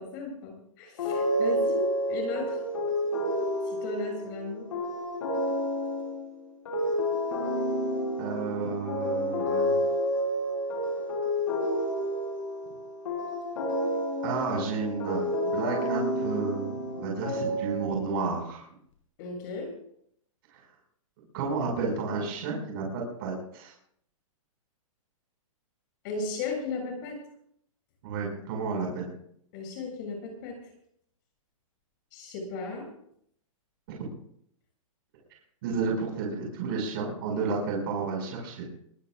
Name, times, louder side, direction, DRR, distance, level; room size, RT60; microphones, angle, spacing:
voice 1, 0.0-2.6 3.7-4.6 19.2-19.7 26.0-27.2 29.5-30.6 32.1-32.9, left 3 dB, 35° left, 1 dB, 7.2 m, -35 dB
sound 1, 1.0-18.2, equal, 65° left, 7.4 m, -30 dB
voice 2, 8.2-9.8 14.2-18.6 20.5-20.6 21.3-23.7 28.0-29.1 35.6-38.7, right 4 dB, 40° right, -1 dB, 5.9 m, -31 dB
22.5 x 18.5 x 2.5 m, 0.67 s
hypercardioid pair, 165°, 18 cm